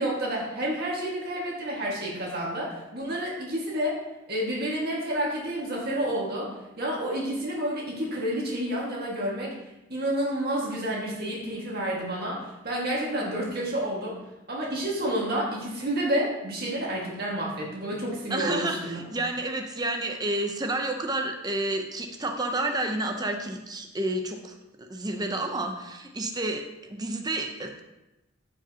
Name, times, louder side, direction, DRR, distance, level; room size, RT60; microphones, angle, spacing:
voice 1, 0.0-4.0 4.3-6.5 6.8-9.5 9.9-12.4 12.6-14.2 14.5-19.0, right 1 dB, 50° right, -4 dB, 1.8 m, -29 dB
voice 2, 18.3-27.8, right 2 dB, 20° right, 4 dB, 0.7 m, -30 dB
15.0 x 5.0 x 2.9 m, 0.98 s
head